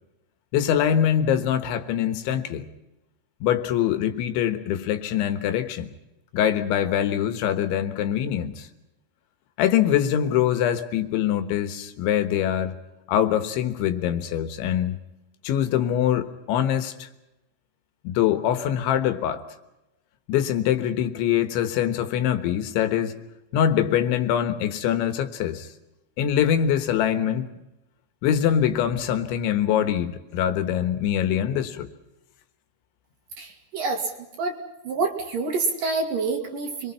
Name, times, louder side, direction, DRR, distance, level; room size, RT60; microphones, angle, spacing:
voice 1, 0.5-2.6 3.4-5.9 6.3-8.7 9.6-12.8 13.1-15.0 15.4-17.1 18.1-19.4 20.3-23.2 23.5-25.7 26.2-27.5 28.2-31.9, left 10 dB, 80° left, 9 dB, 3.6 m, -23 dB
voice 2, 33.4-34.1 34.4-34.6 34.8-36.9, right 3 dB, 55° right, 4 dB, 3.1 m, -27 dB
27.0 x 22.5 x 5.7 m, 0.95 s
omnidirectional pair, 5.4 m